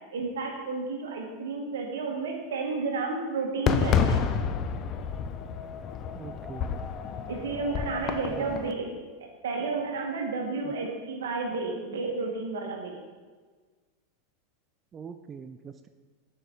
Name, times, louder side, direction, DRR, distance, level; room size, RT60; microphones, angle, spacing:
voice 1, 0.1-4.2 7.3-8.9 9.4-13.0, right 4 dB, 85° right, 2 dB, 1.3 m, -31 dB
Fireworks, 3.7-8.7, left 7 dB, 40° left, 0.4 m, -29 dB
voice 2, 6.1-6.8 8.4-8.6 10.6-10.9 14.9-15.9, right 6 dB, 25° right, 9 dB, 0.3 m, -43 dB
6.8 x 5.0 x 4.5 m, 1.4 s
hypercardioid pair, 115°, 0 cm